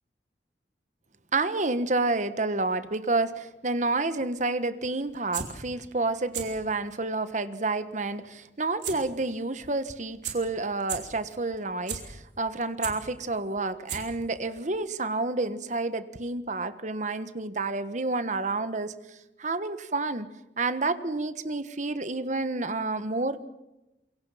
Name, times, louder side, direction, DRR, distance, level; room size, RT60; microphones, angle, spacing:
voice 1, 1.3-20.3 20.6-23.5, right 3 dB, 40° right, 12 dB, 1.4 m, -29 dB
sound 1, 5.1-5.5 6.2-6.4 6.9-7.0 8.8-8.9 9.3-9.4 9.9-10.0 10.2-10.3 10.8-11.0 11.5-12.0 12.5-12.9 13.6-13.7 13.9-14.2 14.6-14.7, right 8 dB, 75° right, 4.8 m, -33 dB
27.5 x 23.5 x 5.8 m, 0.95 s
head